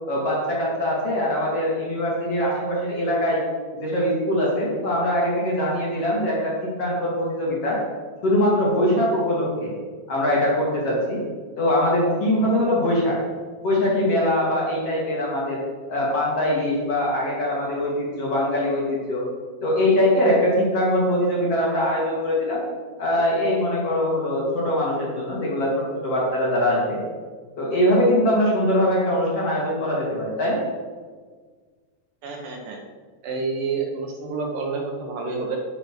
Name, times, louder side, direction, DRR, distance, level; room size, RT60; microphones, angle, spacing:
voice 1, 0.1-3.4 3.8-7.8 8.2-9.7 10.1-11.2 11.6-13.2 13.6-15.6 15.9-19.2 19.6-22.6 23.0-27.0 27.6-30.6, left 1 dB, 40° left, -4 dB, 2.5 m, -22 dB
voice 2, 32.2-32.8 33.2-35.6, right 4 dB, 70° right, 0 dB, 2.1 m, -29 dB
9.8 x 6.2 x 6.1 m, 1.5 s
omnidirectional pair, 5.1 m